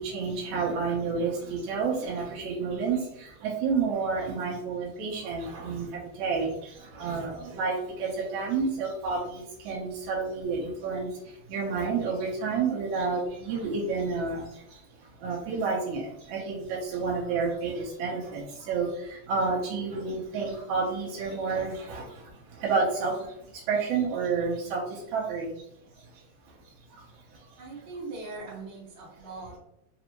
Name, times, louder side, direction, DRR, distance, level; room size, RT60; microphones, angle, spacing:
voice 1, 0.0-25.7 25.9-26.2 26.6-27.1 27.3-27.8, right 4 dB, 70° right, -5 dB, 1.9 m, -30 dB
voice 2, 27.6-29.6, right 3 dB, 55° right, -5 dB, 1.4 m, -40 dB
5.1 x 2.7 x 2.9 m, 0.78 s
omnidirectional pair, 3.9 m